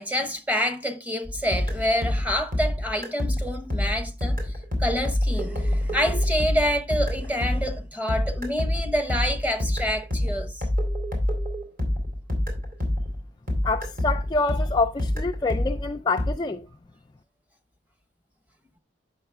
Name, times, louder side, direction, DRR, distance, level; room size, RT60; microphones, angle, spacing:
voice 1, 0.0-4.5 4.8-10.6, equal, 10° right, 0.9 m, -27 dB
sound 1, 1.2-13.2 13.5-16.3, left 1 dB, 45° right, 3.1 m, -27 dB
voice 2, 13.6-16.6, left 3 dB, 20° left, 0.3 m, -26 dB
8.7 x 6.5 x 3.4 m
head